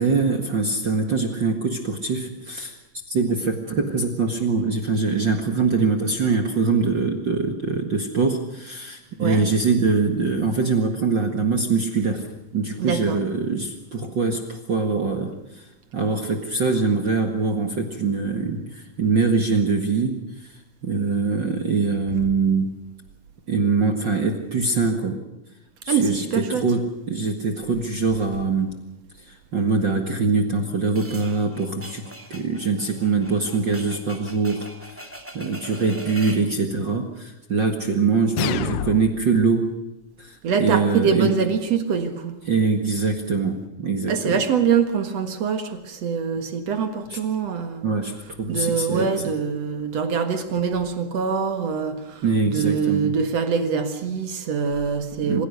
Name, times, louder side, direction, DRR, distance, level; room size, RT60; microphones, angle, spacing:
voice 1, 0.0-2.8 3.1-12.3 12.5-15.7 15.9-20.5 20.8-22.7 23.5-25.2 25.8-28.8 29.2-32.0 32.3-34.7 35.3-39.7 40.2-41.3 42.5-44.4 47.1-47.2 47.8-48.1 48.4-49.3 52.2-53.1 55.3-55.4, right 4 dB, 75° right, 4 dB, 1.0 m, -23 dB
voice 2, 12.8-13.2 25.9-26.6 40.4-42.3 44.1-47.8 48.5-55.4, right 6 dB, 55° right, 8 dB, 1.8 m, -24 dB
sound 1, 31.0-36.5, right 1 dB, 5° right, 1.2 m, -41 dB
sound 2, 38.4-39.4, left 12 dB, 75° left, 3.0 m, -28 dB
26.5 x 16.5 x 6.6 m, 1.0 s
omnidirectional pair, 5.2 m